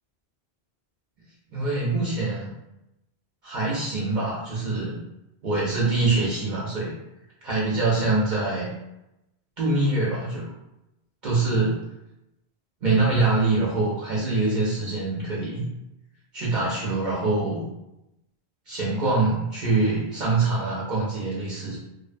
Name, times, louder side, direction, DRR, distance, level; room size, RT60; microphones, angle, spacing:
voice 1, 1.5-2.5 3.4-5.0 5.4-6.9 7.4-8.7 9.6-10.5 11.2-11.8 12.8-15.7 16.3-17.6 18.7-21.8, right 3 dB, 55° right, -7 dB, 0.6 m, -24 dB
2.6 x 2.1 x 2.4 m, 0.91 s
omnidirectional pair, 1.1 m